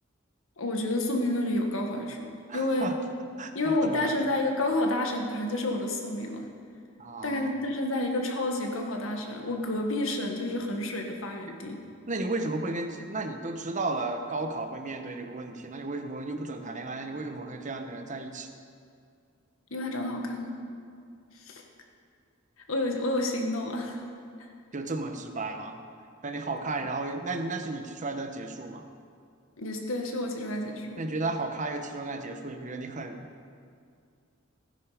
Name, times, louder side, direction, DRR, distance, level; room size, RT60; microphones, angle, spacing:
voice 1, 0.6-2.9 3.5-6.5 7.2-11.8 19.7-20.6 21.4-21.6 22.7-24.0 29.6-31.0, left 1 dB, 85° left, 2 dB, 1.7 m, -30 dB
voice 2, 2.5-3.0 3.4-4.1 7.0-7.5 12.1-18.5 24.7-25.8 26.2-28.9 31.0-33.3, right 2 dB, 40° right, 6 dB, 1.0 m, -34 dB
16.5 x 9.9 x 5.0 m, 2.3 s
head